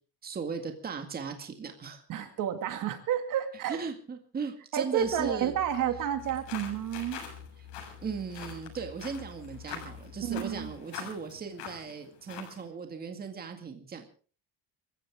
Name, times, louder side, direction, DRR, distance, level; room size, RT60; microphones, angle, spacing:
voice 1, 0.2-2.0 3.7-5.5 7.6-7.7 8.0-14.1, right 5 dB, 20° right, 5 dB, 2.1 m, -37 dB
voice 2, 2.1-3.8 4.7-7.2 10.2-10.7, right 9 dB, 50° right, 8 dB, 2.2 m, -30 dB
sound 1, 5.0-10.7, left 8 dB, 65° left, 4.2 m, -49 dB
sound 2, 6.2-12.7, left 7 dB, 80° left, 6.9 m, -44 dB
26.5 x 15.0 x 3.6 m, 0.39 s
cardioid pair, 175°, 41 cm